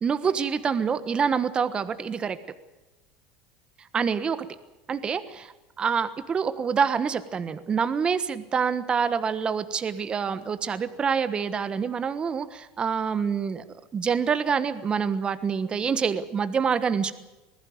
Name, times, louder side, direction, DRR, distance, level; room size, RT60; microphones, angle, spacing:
voice 1, 0.0-2.4 3.9-4.4 4.9-13.6 13.9-17.1, right 6 dB, 25° right, 12 dB, 1.3 m, -26 dB
20.0 x 15.0 x 9.5 m, 1.1 s
supercardioid pair, 120°, 4 cm